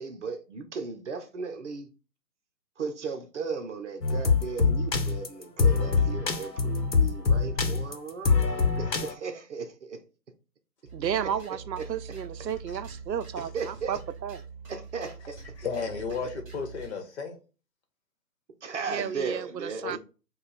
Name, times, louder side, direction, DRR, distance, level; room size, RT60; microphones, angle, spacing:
voice 1, 0.0-1.9 2.8-8.4 8.8-10.0 11.2-11.3 11.8-11.9 13.5-13.9 14.7-15.3 18.6-20.0, right 5 dB, 45° right, 0.7 m, -36 dB
sound 1, 4.0-9.1, left 4 dB, 90° left, 1.0 m, -24 dB
sound 2, 10.8-17.0, right 5 dB, 15° right, 1.6 m, -44 dB
voice 2, 10.9-14.4 18.9-20.0, right 9 dB, 85° right, 0.5 m, -33 dB
voice 3, 15.6-17.4 19.8-20.0, left 5 dB, 45° left, 1.2 m, -33 dB
5.3 x 2.4 x 4.0 m
figure-of-eight pair, 135°, 49 cm